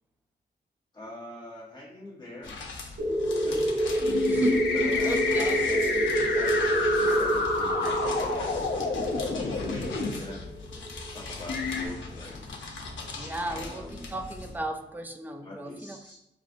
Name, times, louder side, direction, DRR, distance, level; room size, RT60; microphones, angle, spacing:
voice 1, 0.9-2.6 3.4-4.3 4.7-5.3 5.6-10.5 11.1-12.4 13.4-14.2 15.4-16.2, left 1 dB, 25° left, -5 dB, 1.3 m, -43 dB
sound 1, 2.4-14.6, left 3 dB, 90° left, 0.8 m, -41 dB
sound 2, 3.0-11.3, right 1 dB, 65° right, 1.0 m, -28 dB
sound 3, 4.1-10.1 10.9-11.0 11.5-11.9, left 4 dB, 60° left, 0.6 m, -29 dB
voice 2, 4.3-5.6 7.1-7.2 7.8-8.0 13.2-16.0, right 1 dB, 10° right, 6 dB, 0.3 m, -34 dB
5.6 x 2.4 x 2.5 m, 0.86 s
wide cardioid pair, 150°, 19 cm